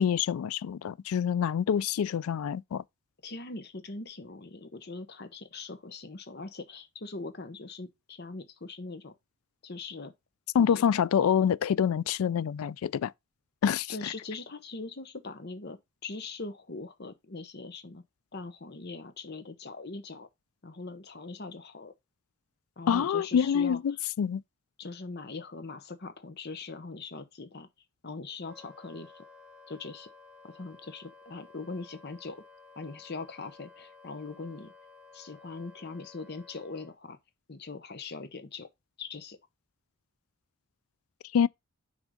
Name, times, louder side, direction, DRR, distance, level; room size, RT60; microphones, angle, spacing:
voice 1, 0.0-2.8 10.5-13.1 13.6-14.1 22.9-24.4 41.3-41.5, left 8 dB, 75° left, 0.3 m, -26 dB
voice 2, 3.2-9.1 9.6-10.1 10.5-10.9 13.9-18.0 18.3-20.3 20.6-21.9 22.8-23.8 24.8-27.7 28.0-29.2 29.7-30.1 30.4-32.4 32.8-34.7 35.1-37.2 37.5-38.7 39.0-39.4, left 3 dB, 45° left, 0.9 m, -41 dB
Wind instrument woodwind instrument, 28.4-36.9, left 4 dB, 5° right, 0.7 m, -54 dB
6.3 x 3.6 x 5.0 m
head